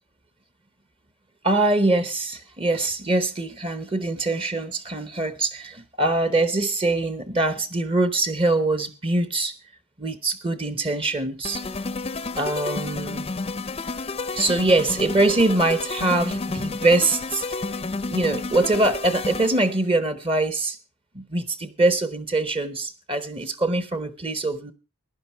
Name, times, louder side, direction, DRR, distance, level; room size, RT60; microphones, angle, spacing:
voice 1, 1.4-9.6 10.0-11.6 12.4-13.3 14.3-17.6 18.1-20.8 21.1-24.7, right 2 dB, 25° right, 13 dB, 0.8 m, -23 dB
sound 1, 11.4-19.8, left 3 dB, 25° left, 0.6 m, -31 dB
15.5 x 11.0 x 4.5 m, 0.31 s
head